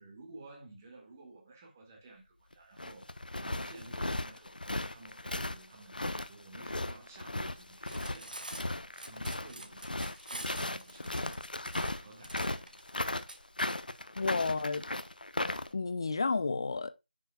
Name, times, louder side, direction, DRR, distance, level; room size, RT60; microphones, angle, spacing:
voice 1, 0.0-3.1 3.4-6.0 6.2-8.6 9.1-11.5 11.9-12.8, right 2 dB, 15° right, 1.9 m, -53 dB
sound 1, 2.5-15.7, left 2 dB, 65° left, 1.0 m, -36 dB
Cutlery silverware, 7.7-13.4, right 1 dB, 60° right, 1.7 m, -46 dB
voice 2, 14.2-14.8 15.7-16.9, left 4 dB, 30° left, 0.6 m, -31 dB
10.0 x 6.1 x 2.3 m
figure-of-eight pair, 165°, 5 cm